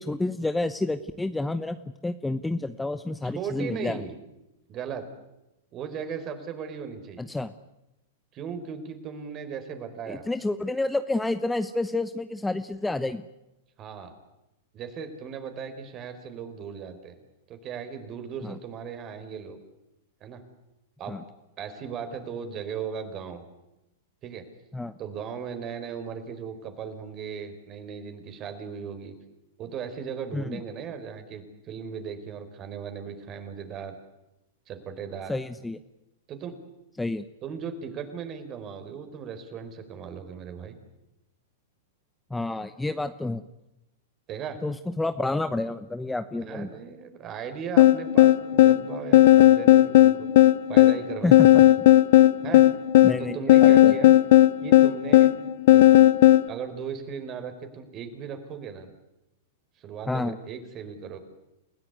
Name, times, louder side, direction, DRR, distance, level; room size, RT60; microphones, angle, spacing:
voice 1, 0.0-1.8 2.0-4.0 7.2-7.5 10.1-13.2 18.4-18.6 21.1-21.2 24.7-24.9 30.3-30.6 35.3-35.8 37.0-37.2 42.3-43.5 44.6-46.7 51.2-51.6 53.0-54.0 60.1-60.4, left 2 dB, 5° left, 11 dB, 1.0 m, -29 dB
voice 2, 3.2-4.1 4.7-5.1 5.7-7.2 8.3-10.3 13.8-14.1 14.7-17.2 17.5-19.6 20.2-20.4 21.0-21.2 21.6-23.4 24.2-24.5 25.0-29.2 29.6-34.0 34.7-35.3 36.3-36.6 37.4-40.8 44.3-44.6 46.4-50.3 50.7-51.7 52.4-52.6 53.2-54.1 54.6-55.3 55.7-55.8 56.5-58.9 59.8-61.2, right 7 dB, 35° right, 8 dB, 4.7 m, -37 dB
sound 1, 47.8-56.5, left 14 dB, 60° left, 0.9 m, -16 dB
29.5 x 16.5 x 9.6 m, 0.93 s
hypercardioid pair, 110°, 0 cm